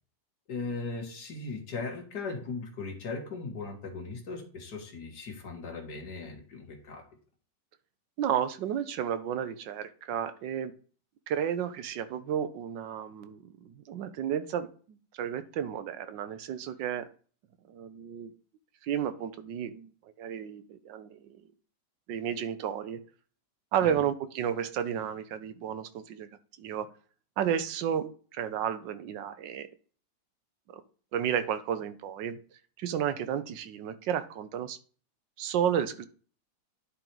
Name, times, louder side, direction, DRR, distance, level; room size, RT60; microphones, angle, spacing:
voice 1, 0.5-7.0 23.8-24.0, left 4 dB, 65° left, 3 dB, 2.0 m, -38 dB
voice 2, 8.2-10.7 11.3-17.1 17.7-18.3 18.8-19.9 20.2-21.4 22.1-23.0 23.7-26.3 26.6-26.9 27.4-29.7 30.7-30.8 31.1-32.4 32.8-34.8 35.4-36.1, right 9 dB, 85° right, 12 dB, 1.4 m, -32 dB
10.5 x 3.9 x 4.5 m, 0.41 s
omnidirectional pair, 1.9 m